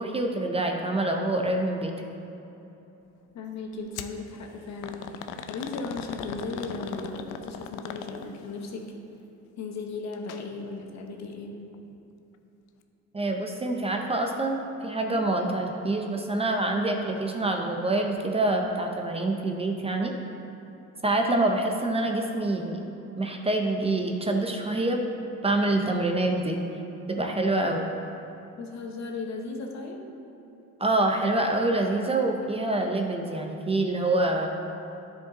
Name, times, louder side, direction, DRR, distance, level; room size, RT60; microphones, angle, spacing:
voice 1, 0.0-1.9 13.1-20.1 21.0-22.9 23.2-25.0 25.4-26.6 27.1-27.9 30.8-34.5, right 2 dB, 20° right, 2 dB, 0.6 m, -26 dB
voice 2, 3.3-8.9 9.6-11.6 28.5-30.0, left 3 dB, 60° left, 2 dB, 1.1 m, -36 dB
sound 1, 3.9-4.2 4.8-8.5 10.1-10.4 10.8-10.9 11.7-11.8, left 8 dB, 75° left, 0.5 m, -38 dB
9.9 x 5.3 x 3.9 m, 2.9 s
cardioid pair, 110°, 31 cm